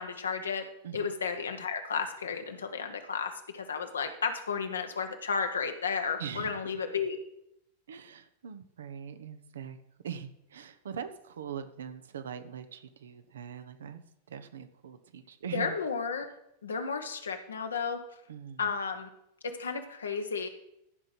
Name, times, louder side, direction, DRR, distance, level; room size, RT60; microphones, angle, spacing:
voice 1, 0.0-0.7 0.9-7.2 15.5-16.3 16.6-18.0 18.6-19.1 19.4-20.5, left 5 dB, 70° left, 6 dB, 1.2 m, -33 dB
voice 2, 6.2-6.6 7.9-9.8 10.0-15.8 18.3-18.7, right 8 dB, 65° right, 10 dB, 1.0 m, -42 dB
14.5 x 5.3 x 6.0 m, 0.80 s
figure-of-eight pair, 90°, 0 cm